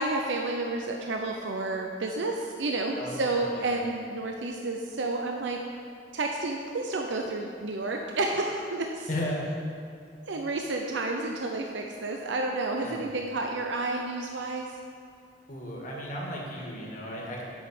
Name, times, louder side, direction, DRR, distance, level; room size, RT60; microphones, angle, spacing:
voice 1, 0.0-5.6 6.1-9.1 10.3-14.7, right 2 dB, 70° right, 2 dB, 0.6 m, -30 dB
voice 2, 3.0-3.7 9.1-9.5 12.8-13.1 15.5-17.4, left 1 dB, 40° left, -3 dB, 1.8 m, -35 dB
8.6 x 6.0 x 6.6 m, 2.3 s
head